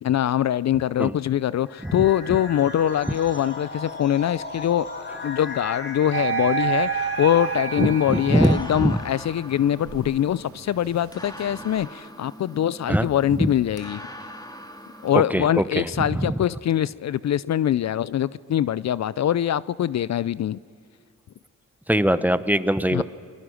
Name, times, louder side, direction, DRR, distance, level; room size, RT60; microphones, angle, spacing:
voice 1, 0.0-4.9 5.2-14.0 15.0-20.6 22.9-23.0, left 10 dB, 60° left, 19 dB, 0.5 m, -23 dB
sound 1, 1.7-9.3, left 3 dB, 35° left, 4.5 m, -36 dB
sound 2, 6.1-9.0 9.5-11.8, right 9 dB, 45° right, 0.7 m, -29 dB
sound 3, 7.2-15.1, equal, 10° left, 2.1 m, -43 dB
voice 2, 7.8-9.0 12.9-13.5 15.3-15.9 16.1-16.4 21.9-23.0, right 1 dB, 5° right, 14 dB, 0.8 m, -22 dB
29.0 x 22.0 x 6.4 m, 2.4 s
cardioid pair, 80°, 31 cm